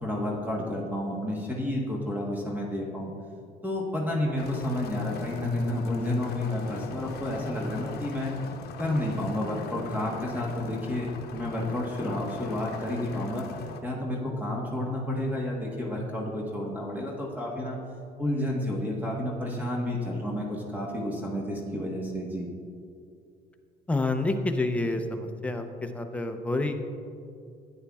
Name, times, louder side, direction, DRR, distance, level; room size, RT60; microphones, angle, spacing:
voice 1, 0.0-3.1 3.6-8.3 8.8-13.5 13.8-17.8 18.2-22.5, left 1 dB, 10° right, -3 dB, 1.2 m, -30 dB
sound 1, 4.4-13.8, left 5 dB, 70° left, 0.7 m, -40 dB
voice 2, 23.9-26.7, left 2 dB, 10° left, 5 dB, 0.6 m, -28 dB
11.0 x 8.8 x 2.4 m, 2.4 s
cardioid pair, 110°, 17 cm